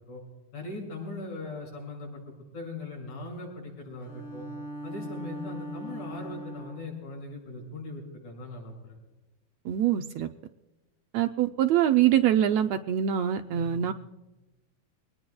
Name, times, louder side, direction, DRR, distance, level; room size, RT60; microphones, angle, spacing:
voice 1, 0.5-4.5 4.8-8.9 13.5-13.9, left 2 dB, 75° left, -2 dB, 7.8 m, -40 dB
Bowed string instrument, 4.0-7.0, right 1 dB, 40° left, 2.8 m, -40 dB
voice 2, 9.7-10.3 11.1-13.9, right 10 dB, 75° right, 6 dB, 1.7 m, -24 dB
24.5 x 19.0 x 2.3 m, 1.0 s
omnidirectional pair, 3.4 m